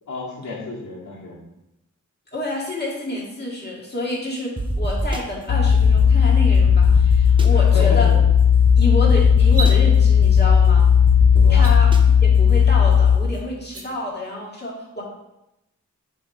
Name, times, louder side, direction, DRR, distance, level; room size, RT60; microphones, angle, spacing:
voice 1, 0.1-1.4 7.5-8.2 11.3-11.7, left 3 dB, 75° left, -5 dB, 2.3 m, -31 dB
voice 2, 2.3-8.1 8.8-10.9 11.5-11.9 12.2-15.0, left 1 dB, 35° left, -4 dB, 2.1 m, -28 dB
sound 1, 4.6-5.2 5.7-6.1 6.5-7.5 8.2-8.3 8.7-8.8 9.1-9.7 10.2-10.6 11.1-12.0, right 1 dB, 15° right, 0.6 m, -24 dB
sound 2, 5.5-13.2, left 8 dB, 50° left, 0.5 m, -15 dB
sound 3, 9.5-9.8 11.5-11.7 13.6-13.8, right 4 dB, 50° right, 1.3 m, -30 dB
7.4 x 3.6 x 4.7 m, 0.88 s
wide cardioid pair, 100°, 30 cm